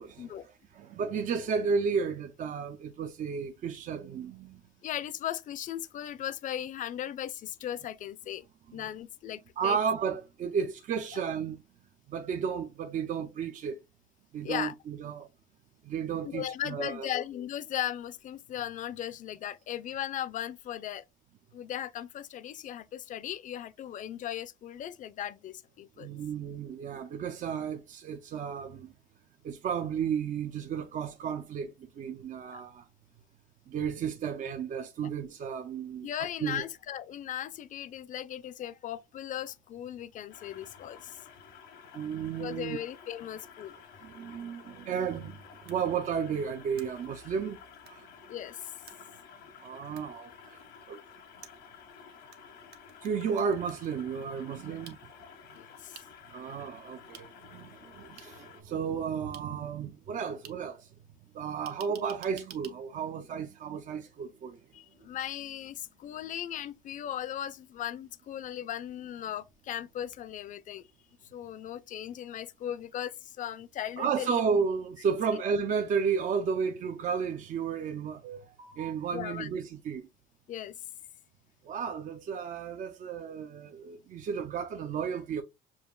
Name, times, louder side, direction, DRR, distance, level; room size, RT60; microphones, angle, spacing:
voice 1, 0.0-4.6 8.7-8.9 9.6-11.6 12.1-13.8 14.3-15.3 15.8-17.1 26.0-28.9 29.4-32.8 33.7-36.1 36.4-36.6 41.9-42.8 44.0-47.6 47.9-48.1 49.6-50.6 50.9-51.0 53.0-55.0 56.3-60.9 61.3-64.6 74.0-80.1 81.7-85.4, right 6 dB, 50° right, 0.5 m, -33 dB
voice 2, 4.8-8.5 8.7-9.8 14.4-14.7 16.2-21.0 21.5-26.1 32.5-32.6 36.0-41.2 42.4-43.7 48.3-48.6 54.7-54.8 55.5-56.1 64.7-70.8 71.3-74.4 75.3-75.4 79.1-79.5 80.5-80.7, left 11 dB, 50° left, 0.5 m, -37 dB
sound 1, 40.3-58.6, left 7 dB, 85° left, 1.1 m, -52 dB
sound 2, 45.7-45.8 46.8-46.9 47.9-48.0 48.9-49.0 50.0-50.1 51.4-52.4 52.7-53.9 54.9-55.0 55.9-56.1 57.1-57.2 58.2-58.3 59.3-59.4 60.4-60.5 61.7-62.7, right 8 dB, 70° right, 0.9 m, -49 dB
7.0 x 2.4 x 2.3 m
cardioid pair, 110°, 17 cm